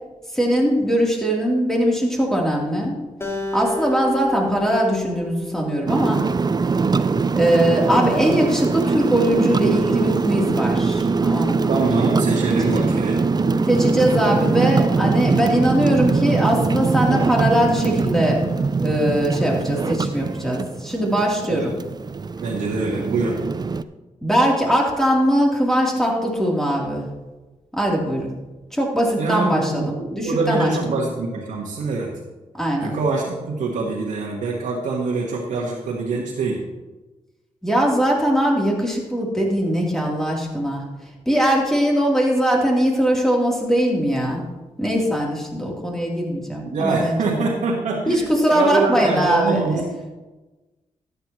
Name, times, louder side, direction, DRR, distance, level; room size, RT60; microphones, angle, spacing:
voice 1, 0.3-3.0 3.5-6.2 7.3-11.8 12.5-12.9 13.7-18.4 18.8-21.7 24.2-27.1 27.7-28.3 28.7-30.7 32.6-33.0 37.6-40.8 41.2-44.4 44.8-47.5 48.1-49.7, equal, 5° left, -2 dB, 3.4 m, -21 dB
Acoustic guitar, 3.2-6.6, left 2 dB, 20° left, 2.0 m, -31 dB
sound 1, 5.9-23.8, right 4 dB, 35° right, 0.5 m, -22 dB
voice 2, 11.7-13.3 21.5-21.7 22.4-23.4 29.2-32.1 32.8-36.6 46.6-49.8, right 3 dB, 85° right, -3 dB, 1.5 m, -24 dB
13.0 x 10.0 x 3.1 m, 1.2 s
cardioid pair, 60°, 13 cm